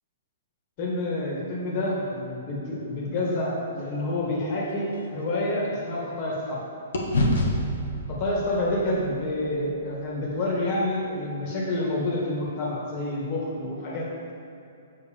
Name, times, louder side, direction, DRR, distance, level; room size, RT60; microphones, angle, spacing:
voice 1, 0.8-6.6 8.1-14.3, left 1 dB, 40° left, -3 dB, 1.7 m, -28 dB
sound 1, 4.2-6.6 6.9-11.2, left 1 dB, 80° left, 1.1 m, -30 dB
7.2 x 6.5 x 3.5 m, 2.8 s
hypercardioid pair, 155°, 0 cm